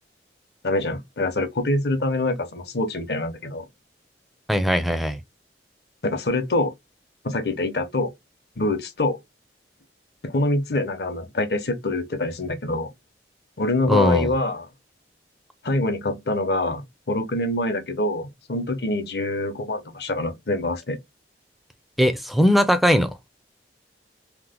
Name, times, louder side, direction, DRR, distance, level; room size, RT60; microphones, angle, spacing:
voice 1, 0.6-3.7 6.0-6.7 7.2-8.1 8.6-9.2 10.2-12.9 13.6-14.7 15.6-21.0, left 2 dB, 60° left, 0.8 m, -25 dB
voice 2, 4.5-5.2 13.9-14.3 22.0-23.1, equal, ahead, 0.4 m, -19 dB
3.0 x 2.1 x 3.5 m
head